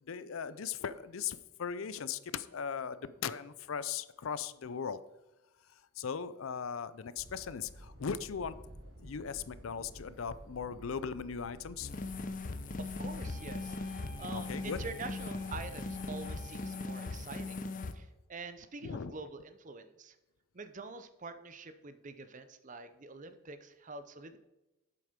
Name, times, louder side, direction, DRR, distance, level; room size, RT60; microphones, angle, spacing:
voice 1, 0.1-5.0 6.0-8.5 9.0-11.9 14.3-14.8 18.8-19.1, left 6 dB, 85° left, 15 dB, 0.5 m, -38 dB
sound 1, 7.2-16.4, equal, 65° right, 1.4 m, -52 dB
sound 2, 11.8-17.9, left 3 dB, 40° left, 0.7 m, -39 dB
voice 2, 12.8-17.7 17.9-20.2 20.5-24.4, right 3 dB, 40° right, 11 dB, 0.7 m, -46 dB
sound 3, 13.2-17.4, right 4 dB, 20° left, 3.2 m, -56 dB
8.1 x 7.7 x 5.1 m, 1.0 s
head